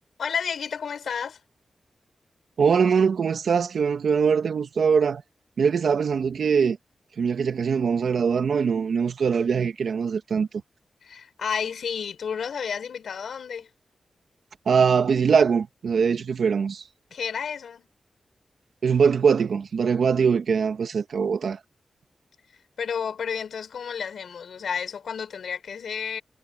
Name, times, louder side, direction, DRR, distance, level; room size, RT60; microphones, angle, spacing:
voice 1, 0.2-1.4 11.0-13.7 17.1-17.9 22.8-26.2, left 7 dB, 85° left, 5.8 m, -31 dB
voice 2, 2.6-5.2 5.6-6.8 7.2-10.5 14.7-16.8 18.8-21.6, right 6 dB, 75° right, 2.7 m, -22 dB
wide cardioid pair, 110°, 0 cm